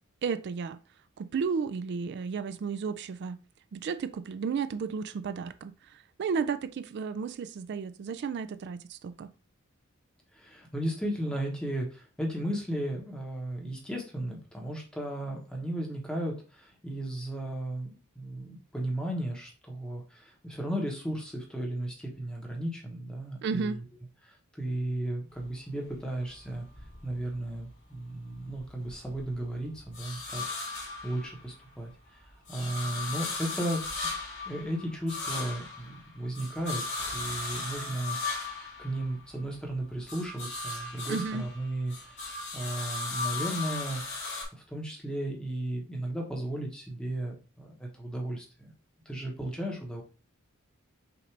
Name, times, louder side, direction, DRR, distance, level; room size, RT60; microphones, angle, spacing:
voice 1, 0.2-0.8 1.2-3.4 3.7-9.3 23.4-23.8 41.1-41.5, right 5 dB, 50° right, 0.3 m, -33 dB
voice 2, 10.3-23.8 24.2-26.7 27.0-30.4 31.0-31.9 32.2-33.8 34.4-36.8 37.1-38.2 38.8-44.0 44.5-48.7 49.0-50.0, right 1 dB, 5° left, 1.0 m, -35 dB
sound 1, 25.4-27.7 28.1-31.8 32.1-39.6 39.9-44.5, left 3 dB, 55° left, 2.2 m, -37 dB
5.7 x 2.6 x 3.3 m
head